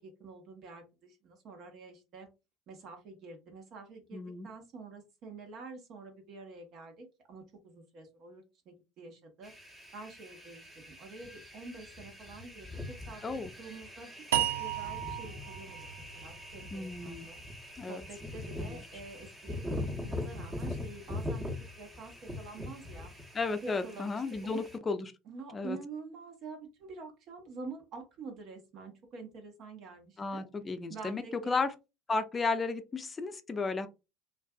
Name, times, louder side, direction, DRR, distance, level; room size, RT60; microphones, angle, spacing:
voice 1, 0.0-2.3 2.7-9.5 9.9-17.4 17.8-23.1 23.6-24.6 25.3-30.4 30.9-31.7, right 3 dB, 55° right, 0.8 m, -47 dB
voice 2, 4.1-4.5 13.2-13.5 16.7-17.3 17.8-18.0 18.6-18.8 23.3-25.1 25.5-25.8 30.2-31.7 32.1-33.9, left 4 dB, 25° left, 0.5 m, -34 dB
sound 1, 9.4-24.8, left 2 dB, 15° right, 0.8 m, -42 dB
sound 2, 14.3-17.5, right 12 dB, 75° right, 0.3 m, -35 dB
2.5 x 2.3 x 2.3 m
hypercardioid pair, 70°, 0 cm